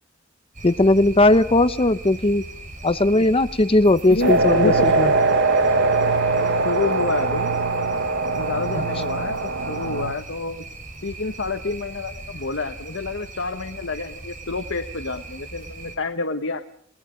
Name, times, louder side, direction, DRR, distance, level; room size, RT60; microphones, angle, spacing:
sound 1, 0.5-15.9, right 2 dB, 45° right, 5.0 m, -39 dB
voice 1, 0.6-2.4 2.8-5.1 8.8-8.9, left 2 dB, 30° left, 13 dB, 0.9 m, -18 dB
voice 2, 4.1-4.9 6.4-7.5 8.3-10.6 11.0-16.6, left 3 dB, 70° left, 7 dB, 1.3 m, -28 dB
sound 2, 4.2-10.1, right 3 dB, 65° right, 1.4 m, -21 dB
29.5 x 20.0 x 5.2 m, 0.65 s
head